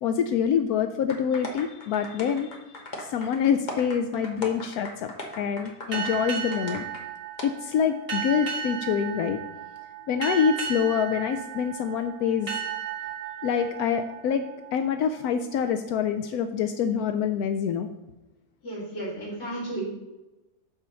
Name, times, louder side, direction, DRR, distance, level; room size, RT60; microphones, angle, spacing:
voice 1, 0.0-2.6 3.0-6.8 7.4-9.4 10.1-12.5 13.4-14.5 14.7-17.9, left 7 dB, 80° left, 7 dB, 1.1 m, -26 dB
sound 1, 1.1-7.0 7.4-7.5, left 1 dB, 30° left, 1.2 m, -39 dB
sound 2, 5.9-15.2, right 8 dB, 35° right, 2.0 m, -35 dB
voice 2, 18.6-19.9, right 1 dB, 50° left, -9 dB, 4.2 m, -33 dB
9.4 x 4.4 x 6.2 m, 1.0 s
omnidirectional pair, 1.6 m